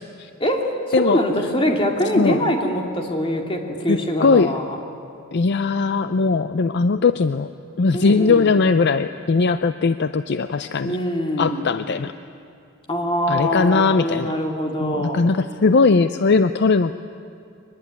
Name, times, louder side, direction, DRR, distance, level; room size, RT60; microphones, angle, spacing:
voice 1, 0.4-4.8 7.9-8.5 10.8-11.7 12.9-15.2, equal, 25° left, 2 dB, 2.5 m, -23 dB
voice 2, 3.9-4.5 5.3-7.5 7.8-11.0 11.4-12.1 13.3-14.3 14.8-17.0, left 4 dB, 50° left, 11 dB, 0.5 m, -19 dB
23.0 x 20.5 x 9.5 m, 2.5 s
head